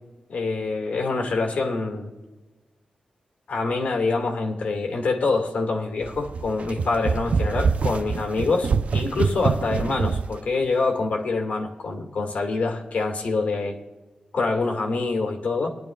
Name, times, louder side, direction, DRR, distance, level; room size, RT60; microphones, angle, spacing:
voice 1, 0.3-2.1 3.5-13.8 14.3-15.7, left 3 dB, 75° left, 3 dB, 1.9 m, -25 dB
sound 1, 6.0-10.4, right 5 dB, 60° right, 0.4 m, -25 dB
22.0 x 10.5 x 2.4 m, 1.2 s
wide cardioid pair, 140°, 3 cm